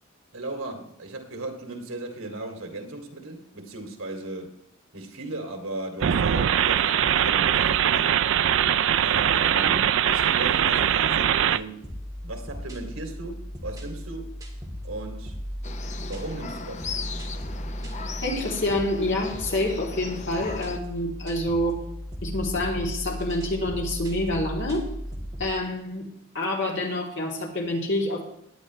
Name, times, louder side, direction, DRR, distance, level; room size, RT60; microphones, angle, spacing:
voice 1, 0.3-4.5 4.9-8.2 8.9-11.9 12.2-14.3 14.8-15.4 16.1-16.9, right 2 dB, 80° right, 4 dB, 2.5 m, -36 dB
sound 1, 6.0-11.6, right 9 dB, 60° right, 0.4 m, -22 dB
sound 2, 11.8-25.6, equal, 15° right, 1.9 m, -36 dB
sound 3, 15.6-20.8, left 5 dB, 35° left, 0.7 m, -38 dB
voice 2, 18.2-21.8 22.2-24.8 25.4-26.1 26.3-28.2, left 1 dB, 60° left, -1 dB, 3.0 m, -27 dB
17.0 x 10.5 x 3.2 m, 0.76 s
head